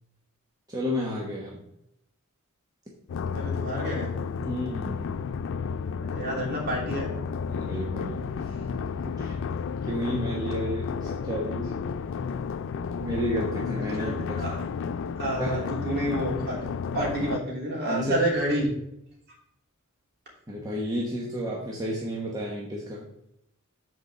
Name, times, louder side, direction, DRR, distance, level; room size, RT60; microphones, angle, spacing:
voice 1, 0.7-1.6 4.4-5.1 7.5-9.6 9.8-11.8 13.0-14.5 15.4-15.8 17.2-17.3 17.8-18.2 20.5-23.1, equal, 15° right, -4 dB, 1.1 m, -32 dB
sound 1, 3.1-17.4, left 6 dB, 60° left, 0.3 m, -32 dB
voice 2, 3.3-4.1 5.9-7.1 13.5-14.5 15.2-16.7 16.9-18.7, right 1 dB, 45° right, -3 dB, 3.0 m, -29 dB
6.4 x 4.5 x 6.6 m, 0.79 s
head